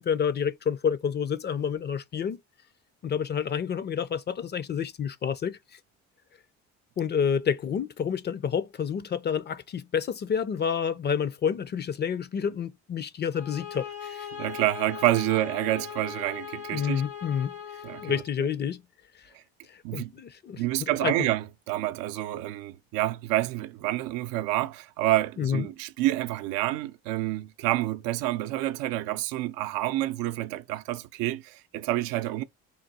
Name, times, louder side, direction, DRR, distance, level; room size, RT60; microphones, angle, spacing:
voice 1, 0.0-2.4 3.0-5.8 7.0-14.3 16.7-17.6 18.0-18.8 19.7-21.1 25.4-25.7, left 7 dB, 30° left, 0.4 m, -29 dB
sound 1, 13.3-18.3, left 8 dB, 90° left, 1.4 m, -39 dB
voice 2, 14.4-17.0 17.8-18.5 19.8-20.1 20.5-32.4, right 16 dB, 80° right, 0.5 m, -28 dB
3.7 x 2.2 x 4.0 m
cardioid pair, 90°, 34 cm